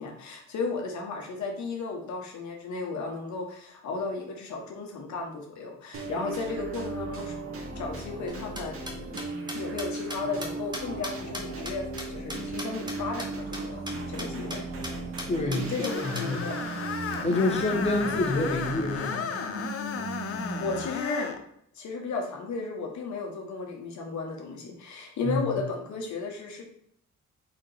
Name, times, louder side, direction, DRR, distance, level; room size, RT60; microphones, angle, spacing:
voice 1, 0.0-7.3 7.7-8.9 9.5-13.8 14.1-14.6 15.4-16.6 17.3-17.6 20.3-21.3 21.7-26.6, left 4 dB, 70° left, 1 dB, 1.1 m, -34 dB
sound 1, 5.9-21.1, right 2 dB, 45° right, 1.0 m, -36 dB
sound 2, 8.3-12.9 13.2-13.3 13.5-13.6 13.9-14.0 14.2-14.6 14.8-14.9 15.2-16.2, equal, 15° right, 1.1 m, -37 dB
voice 2, 15.3-16.4 17.2-19.3 25.2-25.5, left 2 dB, 20° left, 1 dB, 1.1 m, -28 dB
Screech, 15.9-21.4, left 6 dB, 50° left, 0.5 m, -34 dB
4.1 x 2.9 x 4.0 m, 0.71 s
cardioid pair, 90°, 30 cm